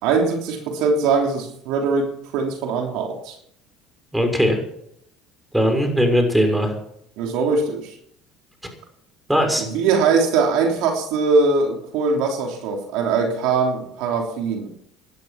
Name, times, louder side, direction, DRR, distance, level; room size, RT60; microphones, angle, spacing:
voice 1, 0.0-3.4 7.2-7.9 9.6-14.7, right 4 dB, 75° right, 2 dB, 3.2 m, -21 dB
voice 2, 4.1-4.6 5.5-6.7 9.3-9.6, equal, 5° right, 4 dB, 6.1 m, -19 dB
18.0 x 11.5 x 5.9 m, 0.71 s
supercardioid pair, 90°, 0 cm